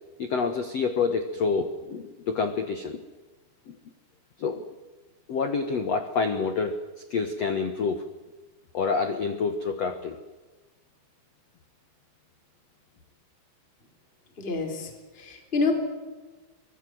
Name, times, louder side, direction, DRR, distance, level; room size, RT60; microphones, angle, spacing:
voice 1, 0.2-3.0 3.7-3.8 4.4-4.7 5.3-6.8 7.1-8.0 8.7-10.2, left 5 dB, 85° left, 8 dB, 1.4 m, -27 dB
voice 2, 14.4-14.9 15.2-15.8, left 3 dB, 15° left, 4 dB, 3.4 m, -27 dB
24.5 x 21.0 x 7.9 m, 1.3 s
omnidirectional pair, 5.2 m